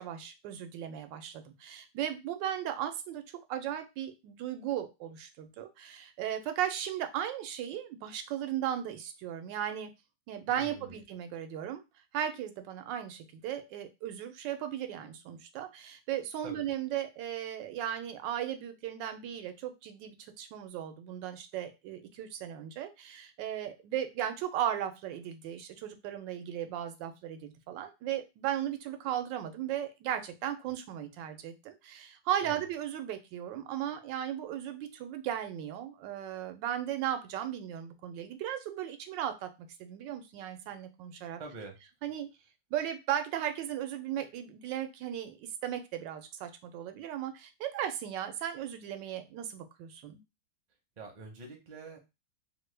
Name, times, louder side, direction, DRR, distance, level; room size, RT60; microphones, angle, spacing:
voice 1, 0.0-3.2 3.5-9.9 10.3-11.8 12.1-41.4 42.0-42.3 42.7-50.2, right 10 dB, 90° right, 7 dB, 1.3 m, -36 dB
voice 2, 10.5-11.0 16.4-16.6 32.4-32.6 41.4-41.8 51.0-52.0, right 3 dB, 45° right, 2 dB, 0.5 m, -45 dB
3.1 x 2.2 x 3.2 m, 0.25 s
omnidirectional pair, 1.9 m